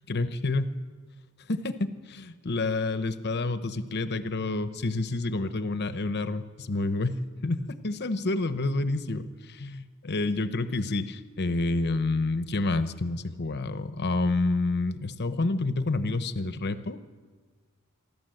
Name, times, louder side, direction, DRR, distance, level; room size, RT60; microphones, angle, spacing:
voice 1, 0.1-0.7 1.5-17.0, left 2 dB, 50° left, 11 dB, 0.9 m, -29 dB
26.5 x 12.5 x 7.8 m, 1.5 s
head